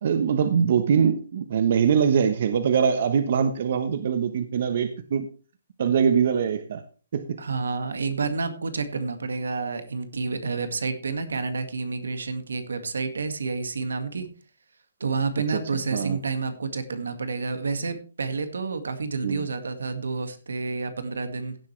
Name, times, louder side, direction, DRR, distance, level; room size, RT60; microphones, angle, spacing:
voice 1, 0.0-5.3 5.8-6.8 7.1-7.4 15.5-15.6 15.9-16.2 19.2-19.5, right 7 dB, 55° right, 1.2 m, -23 dB
voice 2, 7.4-14.3 15.0-21.6, right 4 dB, 90° right, 2.1 m, -29 dB
16.5 x 7.6 x 3.4 m
hypercardioid pair, 160°, 0 cm